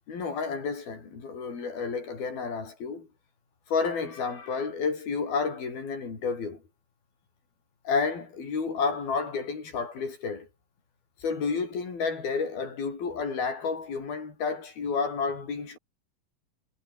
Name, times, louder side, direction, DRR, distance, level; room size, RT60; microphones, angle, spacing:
voice 1, 0.1-3.1 3.7-6.6 7.8-10.5 11.2-15.8, left 5 dB, 80° left, 7.9 m, -30 dB
omnidirectional pair, 4.2 m